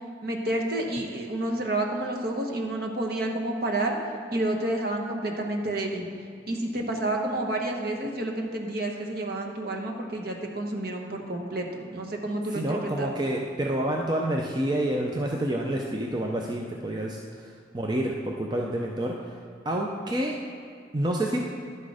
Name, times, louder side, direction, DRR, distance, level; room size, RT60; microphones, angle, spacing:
voice 1, 0.2-4.0 4.3-6.1 6.5-13.1, right 1 dB, 55° right, 1 dB, 1.1 m, -29 dB
voice 2, 12.5-19.2 19.6-20.3 20.9-21.5, right 1 dB, 20° right, 0 dB, 0.5 m, -28 dB
11.0 x 6.2 x 4.9 m, 2.3 s
head